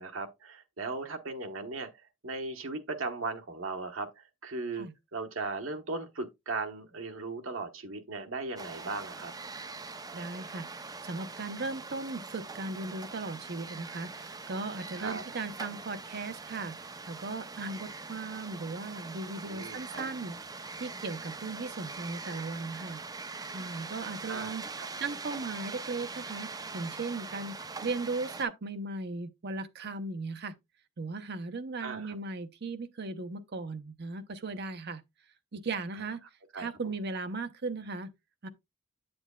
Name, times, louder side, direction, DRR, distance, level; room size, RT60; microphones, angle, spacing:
voice 1, 0.0-9.3 15.0-15.2 19.4-19.8 24.3-24.9 31.8-32.2 35.9-36.0 36.5-36.9, right 3 dB, 80° right, 1.1 m, -38 dB
sound 1, 8.6-28.4, right 4 dB, 20° right, 0.5 m, -42 dB
voice 2, 10.1-20.4 20.8-23.0 23.5-24.6 25.0-26.5 26.7-30.5 31.0-35.0 35.5-36.2 36.5-38.1 38.4-38.5, right 3 dB, 55° right, 0.7 m, -37 dB
8.3 x 7.8 x 2.3 m
head